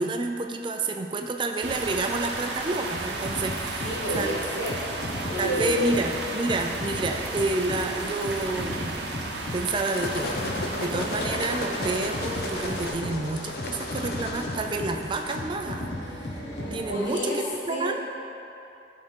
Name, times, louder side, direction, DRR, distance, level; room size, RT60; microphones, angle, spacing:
voice 1, 0.0-4.6 5.4-16.4 16.7-17.4 17.7-17.9, right 3 dB, 25° right, 4 dB, 0.4 m, -29 dB
sound 1, 1.6-12.9, right 3 dB, 70° right, 0.7 m, -34 dB
sound 2, 2.9-17.1, left 1 dB, 70° left, 1.1 m, -36 dB
voice 2, 3.8-4.8 5.3-6.2 7.0-7.2 16.9-18.0, left 1 dB, 90° left, -4 dB, 1.4 m, -30 dB
sound 3, 9.5-15.4, left 2 dB, 55° left, 0.7 m, -34 dB
11.0 x 3.7 x 4.5 m, 2.9 s
head